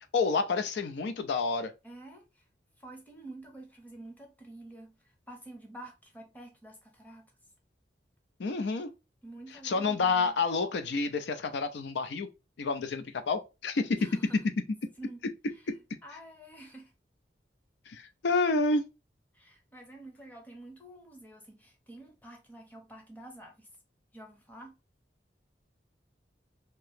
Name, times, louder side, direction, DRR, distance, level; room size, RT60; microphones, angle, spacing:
voice 1, 0.1-1.7 8.4-8.9 9.6-12.3 12.6-14.1 17.9-18.8, left 4 dB, 75° left, 0.4 m, -29 dB
voice 2, 1.8-2.4 2.8-7.3 9.2-10.3 14.0-14.4 15.0-15.2 15.5-15.6 16.0-16.9 19.3-23.7 24.1-24.8, right 1 dB, 10° left, 0.7 m, -49 dB
2.9 x 2.7 x 3.3 m
head